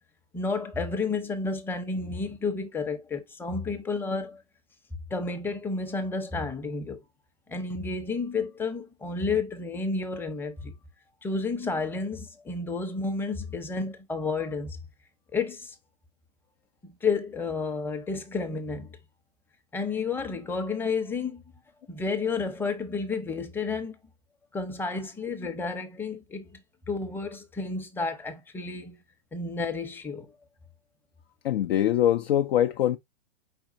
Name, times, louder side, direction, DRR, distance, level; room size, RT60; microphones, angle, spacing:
voice 1, 0.3-4.4 5.1-7.0 7.5-10.7 11.2-14.8 15.3-15.7 16.8-19.0 19.7-21.4 21.9-24.0 24.5-26.6 26.9-29.0 29.3-30.3, left 4 dB, 5° left, 0.7 m, -31 dB
voice 2, 31.4-33.0, left 11 dB, 60° left, 0.5 m, -23 dB
4.5 x 4.2 x 2.6 m
hypercardioid pair, 115°, 34 cm